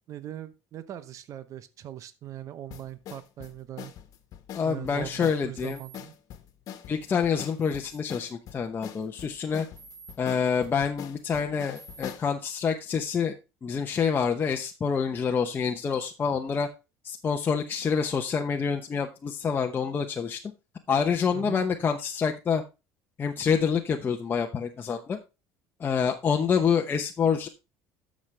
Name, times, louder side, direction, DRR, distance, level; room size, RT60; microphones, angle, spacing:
voice 1, 0.1-3.9 4.6-6.1 21.3-21.7, right 11 dB, 50° right, 13 dB, 0.8 m, -40 dB
sound 1, 2.7-12.3, left 10 dB, 55° left, 1.4 m, -43 dB
voice 2, 4.5-5.8 6.9-9.7 10.2-13.3 13.6-16.7 17.0-20.4 20.9-22.6 23.2-25.2 25.8-27.5, left 6 dB, 30° left, 2 dB, 0.9 m, -27 dB
sound 2, 5.6-6.0 7.6-8.0 9.8-10.1 11.7-12.1, right 5 dB, 75° right, 4.5 m, -49 dB
13.0 x 6.3 x 3.3 m, 0.29 s
cardioid pair, 115°, 7 cm